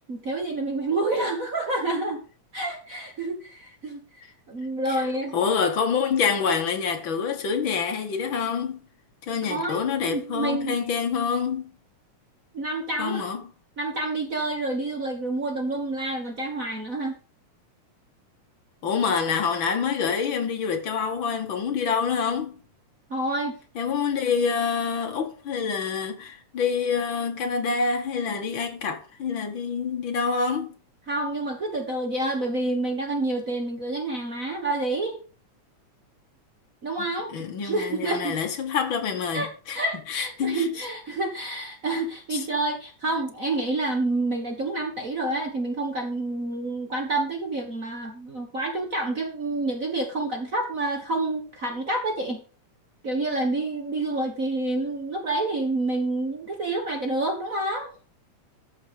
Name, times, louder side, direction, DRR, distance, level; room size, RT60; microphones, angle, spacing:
voice 1, 0.1-2.2 2.5-4.0 4.5-5.4 9.4-10.8 12.5-13.2 13.8-17.1 23.1-23.6 31.1-35.2 36.8-37.3 37.6-38.4 39.3-39.5 39.7-52.4 53.0-57.9, right 2 dB, 40° right, 1.2 m, -28 dB
voice 2, 5.3-8.8 9.3-11.7 13.0-13.4 18.8-22.5 23.8-30.7 37.0-39.8 40.1-40.7 42.3-42.4, left 6 dB, 50° left, 2.0 m, -26 dB
13.0 x 6.5 x 5.2 m
omnidirectional pair, 3.3 m